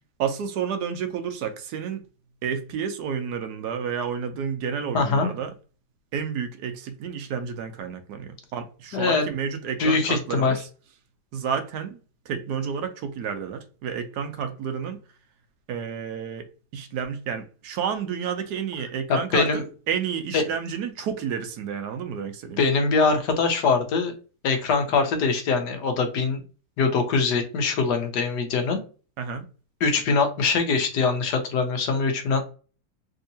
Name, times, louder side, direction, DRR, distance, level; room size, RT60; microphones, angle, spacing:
voice 1, 0.2-2.0 2.4-5.5 6.1-10.6 11.3-12.0 12.3-15.0 15.7-16.5 16.7-22.6 29.2-29.4, right 7 dB, 75° right, 1.1 m, -30 dB
voice 2, 4.9-5.3 8.9-9.3 9.8-10.5 19.1-19.6 20.3-20.4 22.6-24.1 24.4-26.4 26.8-28.8 29.8-32.4, left 4 dB, 75° left, 1.3 m, -23 dB
3.5 x 2.8 x 2.7 m
omnidirectional pair, 1.9 m